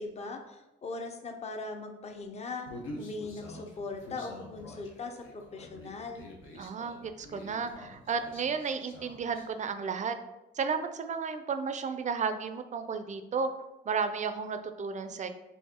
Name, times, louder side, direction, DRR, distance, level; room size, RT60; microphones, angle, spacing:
voice 1, 0.0-6.3, left 3 dB, 35° left, 4 dB, 0.6 m, -40 dB
Human voice, 2.7-9.5, left 1 dB, 80° left, 0.9 m, -47 dB
voice 2, 6.6-10.1 10.5-13.5 13.9-15.3, right 5 dB, 40° right, 9 dB, 0.4 m, -33 dB
4.1 x 2.7 x 3.6 m, 1.0 s
cardioid pair, 90°, 20 cm